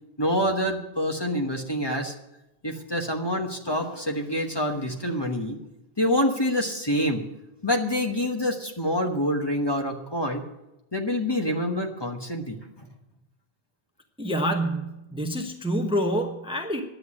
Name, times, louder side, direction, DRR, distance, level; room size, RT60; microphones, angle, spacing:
voice 1, 0.2-2.1 2.6-5.6 6.0-7.2 7.6-10.4 10.9-12.9, equal, 25° left, 2 dB, 1.2 m, -26 dB
voice 2, 14.2-16.8, equal, 5° right, 4 dB, 1.0 m, -27 dB
10.5 x 8.0 x 9.7 m, 0.93 s
omnidirectional pair, 1.0 m